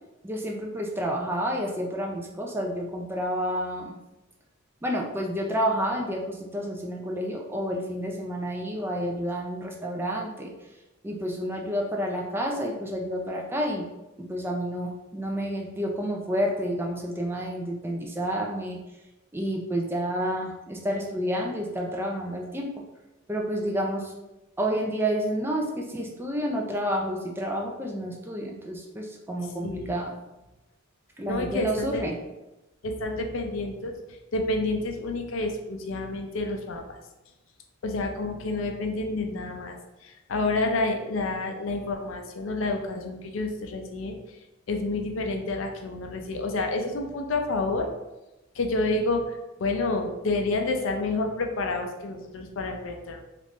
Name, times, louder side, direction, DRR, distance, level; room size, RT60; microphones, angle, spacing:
voice 1, 0.2-4.0 4.8-10.5 11.0-13.9 14.2-18.8 19.3-22.7 23.3-24.1 24.6-30.1 31.2-32.1, equal, 10° right, 0 dB, 0.4 m, -29 dB
voice 2, 29.6-29.9 31.3-32.0 32.8-37.0 37.8-39.7 40.0-44.4 44.7-47.9 48.5-53.2, left 2 dB, 70° left, 4 dB, 0.5 m, -29 dB
3.4 x 2.5 x 3.1 m, 0.99 s
head